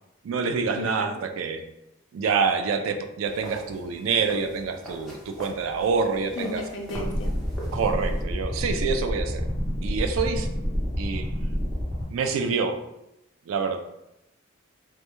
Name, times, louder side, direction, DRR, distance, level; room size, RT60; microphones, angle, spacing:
voice 1, 0.2-1.6 2.1-6.6 7.7-9.5 9.8-10.5 11.0-11.3 12.1-12.8 13.5-13.8, right 5 dB, 85° right, 6 dB, 0.3 m, -26 dB
voice 2, 0.8-1.2 6.4-7.3, left 2 dB, 70° left, 2 dB, 0.4 m, -34 dB
sound 1, 3.2-8.2, right 1 dB, ahead, 0.6 m, -42 dB
sound 2, 6.9-12.0, equal, 35° right, 1.0 m, -28 dB
2.2 x 2.1 x 2.9 m, 0.87 s
head